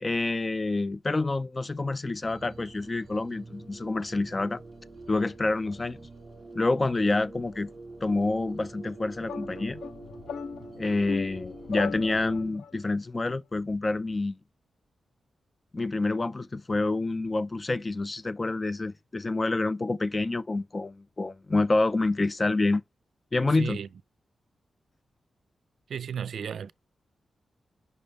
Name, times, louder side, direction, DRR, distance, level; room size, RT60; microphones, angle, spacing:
voice 1, 0.0-4.6 5.1-6.0 6.6-7.7 8.0-9.8 10.8-14.4 15.7-22.8 23.3-23.8, left 2 dB, 25° left, 0.3 m, -27 dB
sound 1, 2.2-12.5, right 3 dB, 35° right, 2.2 m, -45 dB
sound 2, 9.2-12.7, left 6 dB, 80° left, 0.5 m, -38 dB
voice 2, 23.6-23.9 25.9-26.7, right 8 dB, 75° right, 0.3 m, -34 dB
5.4 x 5.2 x 3.9 m
wide cardioid pair, 105°, 0 cm